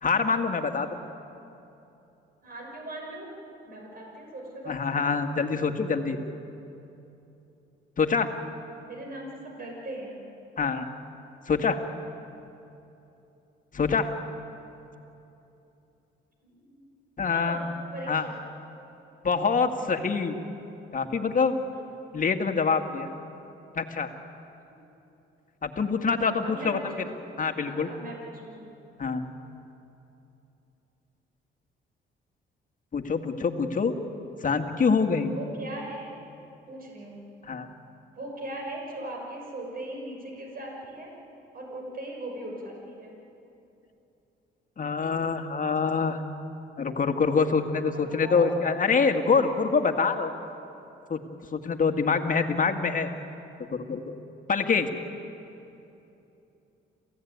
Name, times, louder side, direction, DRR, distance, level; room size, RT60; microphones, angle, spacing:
voice 1, 0.0-0.9 4.7-6.2 8.0-8.3 10.6-10.9 11.5-11.8 13.7-14.1 17.2-17.6 18.1-18.3 19.2-20.4 20.9-21.6 22.1-23.1 23.8-24.1 25.6-26.8 27.4-27.9 29.0-29.2 32.9-33.9 34.4-35.3 37.4-37.7 44.8-46.2 46.8-50.3 51.1-51.2 51.5-53.1 53.7-54.0 54.5-54.9, left 5 dB, 40° left, 6 dB, 2.0 m, -25 dB
voice 2, 2.4-3.3 3.7-5.0 8.8-10.2 16.4-16.8 17.3-17.6 17.9-18.3 26.4-26.9 27.1-27.2 27.6-28.7 35.3-36.1 36.7-37.2 38.2-41.1 41.5-43.1 47.9-48.5 54.5-54.9, right 1 dB, 45° right, 0 dB, 6.0 m, -39 dB
27.5 x 16.5 x 9.5 m, 2.9 s
cardioid pair, 90°, 20 cm